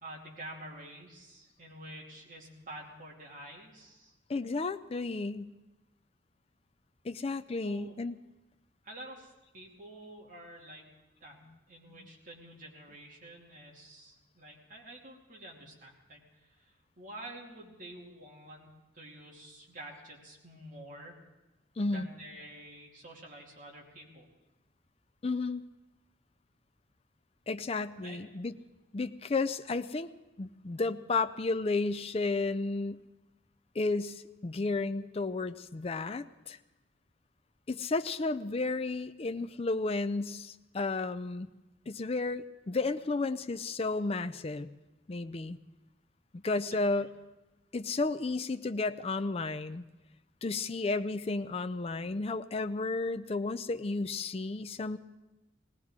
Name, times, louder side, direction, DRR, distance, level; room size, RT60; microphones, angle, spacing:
voice 1, 0.0-4.2 7.6-7.9 8.8-10.8 11.2-11.4 11.7-21.2 21.8-24.3 28.0-28.2 46.6-47.1, right 1 dB, 45° right, -2 dB, 2.6 m, -49 dB
voice 2, 4.3-5.5 7.0-8.2 21.8-22.1 25.2-25.6 27.5-28.6 28.9-30.1 30.4-33.0 33.7-36.6 37.7-41.5 41.9-44.7 45.1-45.6 46.3-47.1 47.7-49.8 50.4-55.0, left 3 dB, 30° left, 10 dB, 0.4 m, -32 dB
19.5 x 18.0 x 3.7 m, 1.0 s
head